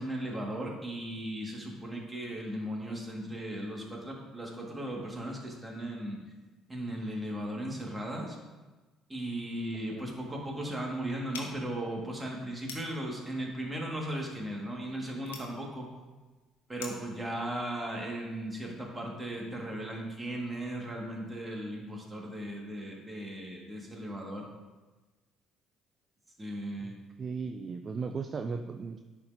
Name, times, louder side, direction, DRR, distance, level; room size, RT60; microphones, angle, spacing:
voice 1, 0.0-6.2 6.7-8.4 9.1-15.9 16.7-24.5 26.4-27.0, right 1 dB, 20° right, -1 dB, 1.8 m, -37 dB
sound 1, 11.3-17.2, left 5 dB, 85° left, 0.8 m, -48 dB
voice 2, 27.2-29.0, right 5 dB, 40° right, 7 dB, 0.3 m, -36 dB
10.5 x 4.4 x 2.7 m, 1.2 s
hypercardioid pair, 55°, 0 cm